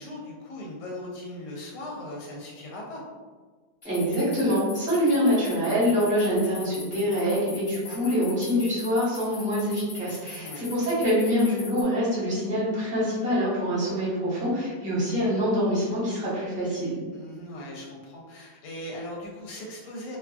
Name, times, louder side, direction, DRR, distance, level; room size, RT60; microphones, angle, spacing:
voice 1, 0.0-3.0 10.4-10.6 17.1-20.2, left 1 dB, 80° left, -2 dB, 1.1 m, -39 dB
sound 1, 3.8-11.8, left 4 dB, 60° left, 0.8 m, -41 dB
voice 2, 3.8-17.0, equal, 5° right, -11 dB, 0.9 m, -25 dB
2.9 x 2.2 x 2.4 m, 1.4 s
omnidirectional pair, 1.8 m